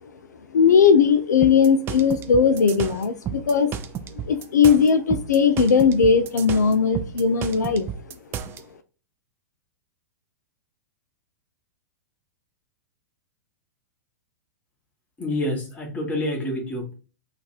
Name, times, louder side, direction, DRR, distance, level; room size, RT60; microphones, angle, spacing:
voice 1, 0.5-3.7 4.3-7.9, left 6 dB, 70° left, 9 dB, 0.4 m, -18 dB
sound 1, 1.4-8.6, right 8 dB, 25° right, 0.3 m, -32 dB
voice 2, 15.2-16.9, left 1 dB, 15° left, 0 dB, 1.2 m, -27 dB
2.9 x 2.4 x 4.3 m, 0.35 s
figure-of-eight pair, 105°, 10 cm